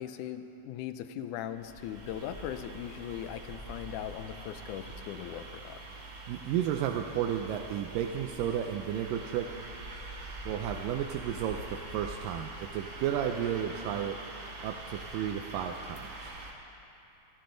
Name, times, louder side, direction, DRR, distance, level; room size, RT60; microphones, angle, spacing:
voice 1, 0.0-5.8, left 10 dB, 75° left, 10 dB, 2.0 m, -39 dB
sound 1, 1.4-16.5, right 2 dB, 45° right, 2.1 m, -44 dB
voice 2, 6.3-9.6 10.5-14.2 14.6-16.3, right 9 dB, 90° right, 3 dB, 2.3 m, -33 dB
25.5 x 14.5 x 3.9 m, 2.8 s
omnidirectional pair, 3.8 m